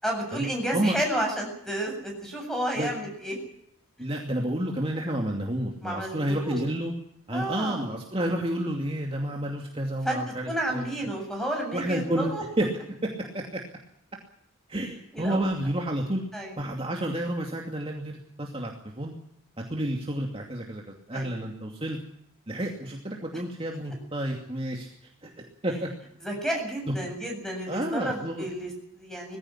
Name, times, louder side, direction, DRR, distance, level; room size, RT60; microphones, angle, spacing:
voice 1, 0.0-3.4 5.8-6.6 7.3-7.8 10.0-10.2 10.5-12.4 15.1-15.4 16.3-16.6 21.1-21.3 26.2-29.4, right 1 dB, ahead, 2 dB, 7.7 m, -31 dB
voice 2, 4.0-6.9 7.3-10.8 11.7-12.3 12.6-12.7 13.0-13.1 13.3-13.6 14.7-16.2 16.6-19.1 19.7-20.8 21.1-22.0 22.5-25.9 27.7-28.5, right 1 dB, 25° right, 0 dB, 2.5 m, -30 dB
20.5 x 16.0 x 9.9 m, 0.72 s
head